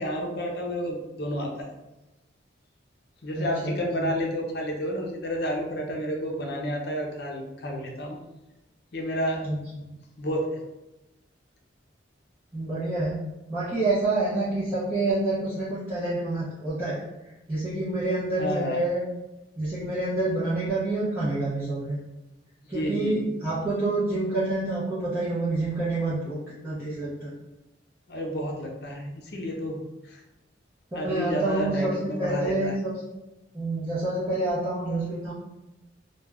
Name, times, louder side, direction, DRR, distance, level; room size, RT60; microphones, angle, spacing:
voice 1, 0.0-1.7 3.2-8.2 8.9-9.4 9.7-9.8 10.2-10.6 18.4-18.8 22.6-23.3 28.1-30.2 30.9-32.8, equal, 55° left, 0 dB, 0.6 m, -30 dB
voice 2, 3.3-4.2 9.4-9.6 9.8-9.9 12.5-13.2 13.5-17.0 17.5-19.0 19.6-22.0 22.7-27.3 30.9-32.9 33.5-35.3, right 2 dB, 10° right, -12 dB, 0.6 m, -28 dB
2.3 x 2.2 x 3.2 m, 0.97 s
head